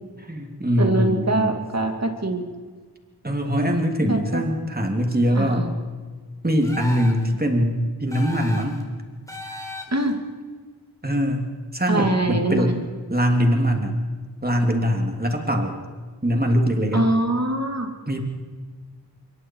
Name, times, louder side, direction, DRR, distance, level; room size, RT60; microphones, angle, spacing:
voice 1, 0.3-1.6 3.2-5.7 6.4-8.8 11.0-12.7 13.1-14.0 14.4-15.8 16.2-17.0 18.1-18.2, equal, 25° right, 3 dB, 3.2 m, -22 dB
voice 2, 0.8-2.5 4.1-4.4 5.3-5.7 9.9-10.2 11.9-12.8 16.9-17.9, right 1 dB, 40° right, 4 dB, 2.6 m, -23 dB
sound 1, 6.6-7.3 8.1-8.8 9.3-10.1, left 1 dB, 10° left, 4.2 m, -36 dB
27.0 x 23.0 x 4.8 m, 1.5 s
wide cardioid pair, 55°, 40 cm